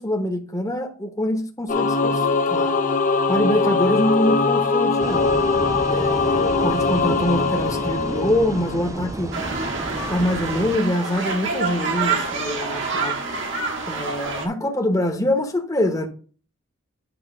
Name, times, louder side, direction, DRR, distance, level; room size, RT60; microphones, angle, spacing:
voice 1, 0.0-2.7 3.3-5.3 5.9-9.3 10.1-13.1 13.9-16.1, left 1 dB, 15° left, 1.0 m, -24 dB
Singing / Musical instrument, 1.7-9.2, left 4 dB, 35° left, 0.7 m, -21 dB
sound 1, 5.0-10.8, right 2 dB, 15° right, 0.3 m, -32 dB
sound 2, 9.3-14.5, right 4 dB, 60° right, 1.4 m, -27 dB
8.8 x 3.0 x 6.0 m
head